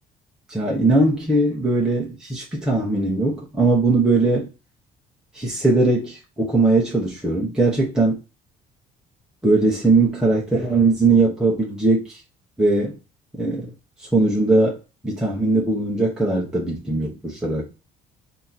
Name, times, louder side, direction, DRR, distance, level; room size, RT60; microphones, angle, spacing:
voice 1, 0.5-4.5 5.3-8.2 9.4-12.2 12.6-12.9 13.4-13.7 14.1-14.8 15.0-17.7, right 2 dB, 5° right, 1.0 m, -20 dB
2.9 x 2.8 x 4.0 m
cardioid pair, 110°, 17 cm